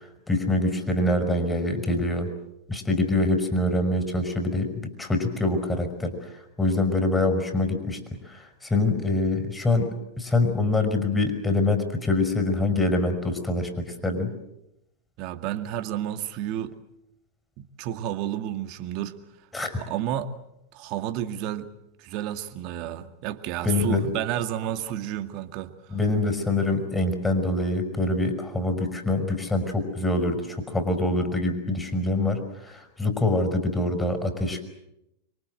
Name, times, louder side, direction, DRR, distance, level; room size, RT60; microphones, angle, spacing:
voice 1, 0.3-2.3 2.7-8.0 8.3-14.3 19.5-19.8 23.6-24.1 25.9-34.6, left 2 dB, 10° left, 6 dB, 5.7 m, -25 dB
voice 2, 15.2-16.8 17.6-19.2 19.8-20.3 20.7-21.7 22.0-26.0, right 11 dB, 50° right, 8 dB, 2.0 m, -31 dB
26.5 x 23.5 x 7.9 m, 0.85 s
hypercardioid pair, 95°, 0 cm